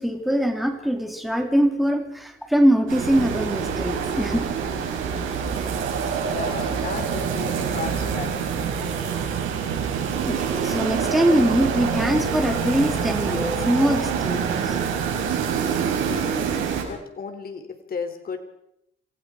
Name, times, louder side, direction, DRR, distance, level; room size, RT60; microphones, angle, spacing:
voice 1, 0.0-4.6 10.3-14.8, equal, ahead, 3 dB, 3.4 m, -22 dB
sound 1, 2.9-16.8, right 7 dB, 85° right, 6.3 m, -26 dB
voice 2, 5.9-8.7 15.9-16.5 16.8-18.4, left 5 dB, 50° left, 7 dB, 3.4 m, -35 dB
28.0 x 20.5 x 4.9 m, 0.77 s
cardioid pair, 90°, 20 cm